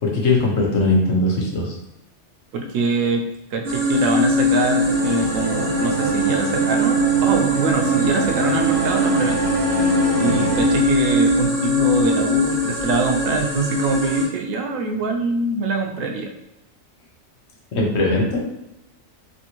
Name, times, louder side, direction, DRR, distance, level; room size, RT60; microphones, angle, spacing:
voice 1, 0.0-1.7 17.7-18.5, left 2 dB, 60° left, -2 dB, 1.1 m, -20 dB
voice 2, 2.5-9.6 10.2-16.3, right 3 dB, 80° right, 3 dB, 1.0 m, -24 dB
sound 1, 3.6-14.2, equal, 55° right, 1.2 m, -21 dB
sound 2, 4.5-10.8, right 4 dB, 25° right, 0.5 m, -26 dB
3.3 x 2.7 x 2.9 m, 0.85 s
omnidirectional pair, 1.3 m